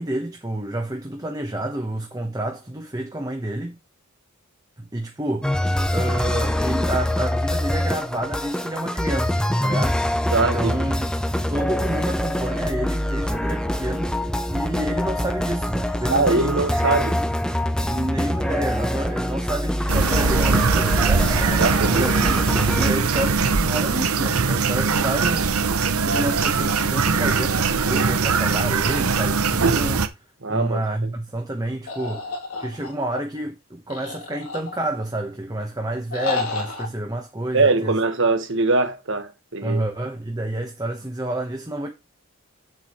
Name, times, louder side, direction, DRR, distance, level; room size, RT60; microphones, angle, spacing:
voice 1, 0.0-3.8 4.8-5.6 5.9-10.0 10.4-11.1 11.5-14.2 14.5-16.9 17.2-17.3 17.8-21.3 21.8-30.1 30.5-32.2 32.6-37.9 39.6-41.9, right 1 dB, 15° right, 1.1 m, -29 dB
sound 1, 5.4-22.9, left 1 dB, 5° left, 0.6 m, -24 dB
voice 2, 10.3-10.7 16.1-17.2 21.6-22.1 30.4-30.8 37.5-39.8, right 3 dB, 60° right, 1.5 m, -22 dB
sound 2, 19.9-30.1, right 5 dB, 85° right, 0.8 m, -21 dB
sound 3, 31.9-33.2 33.9-35.0 36.1-36.9, left 4 dB, 90° left, 2.9 m, -30 dB
8.4 x 7.5 x 3.1 m
head